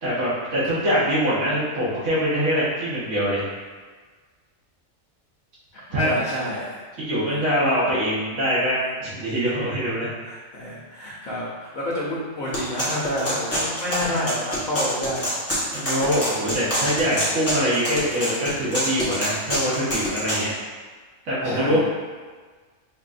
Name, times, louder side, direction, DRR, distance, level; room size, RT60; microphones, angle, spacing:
voice 1, 0.0-3.5 5.9-6.1 7.0-10.1 15.7-20.5 21.2-21.8, equal, 85° right, -10 dB, 1.5 m, -23 dB
voice 2, 5.7-6.8 10.2-15.4 16.7-17.1 21.4-21.9, equal, 85° left, -6 dB, 1.1 m, -29 dB
sound 1, 12.5-20.4, equal, 15° left, 0.8 m, -26 dB
4.5 x 2.7 x 2.5 m, 1.5 s
omnidirectional pair, 1.4 m